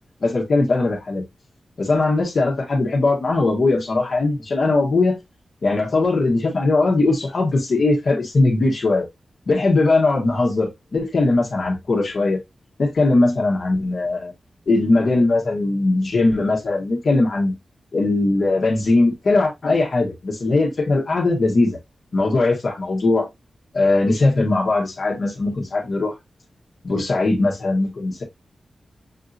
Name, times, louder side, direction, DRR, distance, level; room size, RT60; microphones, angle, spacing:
voice 1, 0.2-1.2 1.8-5.2 5.6-9.1 9.5-12.4 12.8-14.3 14.7-17.5 17.9-21.8 22.1-23.3 23.7-26.1 26.8-28.2, left 2 dB, 50° left, 1.1 m, -19 dB
6.7 x 2.7 x 2.4 m
wide cardioid pair, 165°, 0 cm